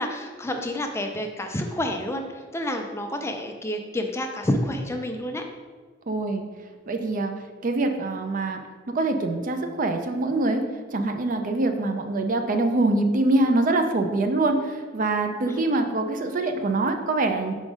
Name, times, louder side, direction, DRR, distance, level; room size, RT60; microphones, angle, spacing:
voice 1, 0.0-5.4 15.4-15.7, left 1 dB, 15° left, 4 dB, 0.4 m, -29 dB
voice 2, 6.1-6.4 6.9-7.3 7.6-8.6 8.9-10.6 10.9-17.5, right 2 dB, 45° right, 6 dB, 0.5 m, -24 dB
5.1 x 3.8 x 4.8 m, 1.5 s
head